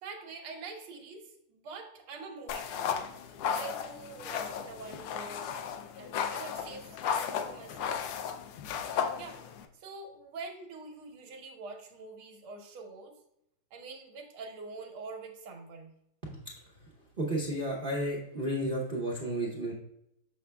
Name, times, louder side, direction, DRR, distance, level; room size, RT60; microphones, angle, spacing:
voice 1, 0.0-5.5 6.0-8.0 8.9-9.4 9.7-13.2 13.7-15.9, right 4 dB, 75° right, 1 dB, 1.8 m, -45 dB
sound 1, 2.5-9.7, left 7 dB, 80° left, 1.5 m, -35 dB
voice 2, 17.2-19.7, right 1 dB, 55° right, -3 dB, 0.5 m, -32 dB
7.1 x 5.9 x 2.2 m, 0.80 s
omnidirectional pair, 2.4 m